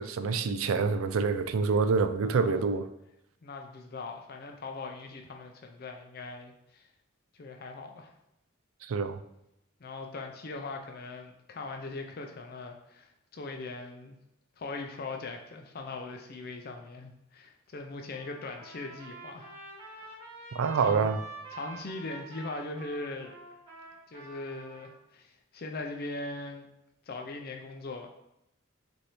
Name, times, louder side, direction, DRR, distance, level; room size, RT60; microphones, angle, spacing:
voice 1, 0.0-2.9 8.8-9.2 20.5-21.2, right 5 dB, 80° right, 10 dB, 0.4 m, -27 dB
voice 2, 2.2-2.6 3.4-6.9 7.3-8.1 9.8-14.2 14.6-19.5 20.0-20.2 20.8-21.1 21.5-23.4 24.1-26.7 27.1-28.1, left 3 dB, 50° left, 3 dB, 0.4 m, -40 dB
Trumpet, 18.1-24.9, right 3 dB, 25° right, 1.5 m, -47 dB
6.2 x 2.6 x 3.0 m, 0.83 s
head